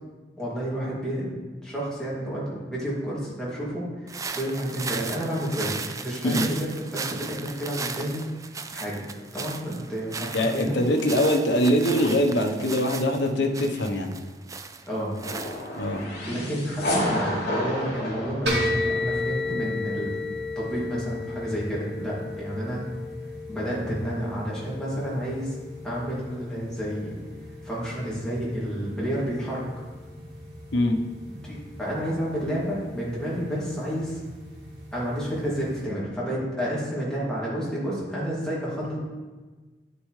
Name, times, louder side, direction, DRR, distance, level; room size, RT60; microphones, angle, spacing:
voice 1, 0.4-1.3 1.6-8.3 8.7-9.0 9.3-10.8 14.9-15.1 16.3-20.2 20.6-22.9 23.5-25.6 25.8-27.1 27.6-29.6 31.4-34.2 34.9-39.0, equal, 5° left, -8 dB, 2.5 m, -30 dB
sound 1, 4.1-16.0, right 5 dB, 20° right, 0.3 m, -36 dB
voice 2, 10.3-14.1 15.8-16.0 30.7-31.0, left 1 dB, 90° left, 3 dB, 1.0 m, -23 dB
sound 2, 15.2-19.3, equal, 60° left, 2.4 m, -30 dB
sound 3, 18.5-35.8, left 2 dB, 75° right, 2.4 m, -35 dB
10.0 x 6.9 x 3.2 m, 1.3 s
head